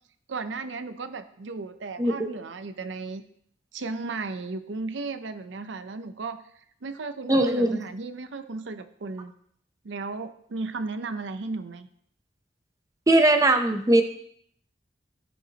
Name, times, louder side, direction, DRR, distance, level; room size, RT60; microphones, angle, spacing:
voice 1, 0.3-3.2 3.7-6.4 6.8-9.3 9.8-11.9, right 3 dB, 75° right, 10 dB, 0.6 m, -35 dB
voice 2, 7.3-7.8 13.1-14.0, right 1 dB, 20° right, 6 dB, 0.6 m, -20 dB
15.0 x 5.5 x 2.9 m, 0.66 s
head